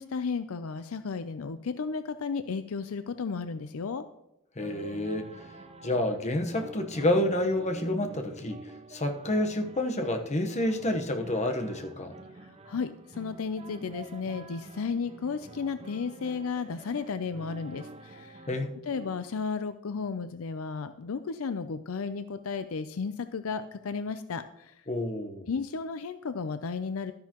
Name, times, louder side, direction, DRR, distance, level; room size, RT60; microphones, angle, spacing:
voice 1, 0.0-4.0 12.6-18.4 18.9-24.7 25.5-27.1, left 5 dB, 70° left, 11 dB, 0.5 m, -33 dB
voice 2, 4.6-5.3 5.8-8.6 8.9-12.1 18.5-18.7 24.9-25.5, left 1 dB, 30° left, 5 dB, 1.1 m, -29 dB
sound 1, 4.6-19.2, right 2 dB, 30° right, 0.6 m, -48 dB
12.5 x 10.5 x 3.0 m, 0.82 s
head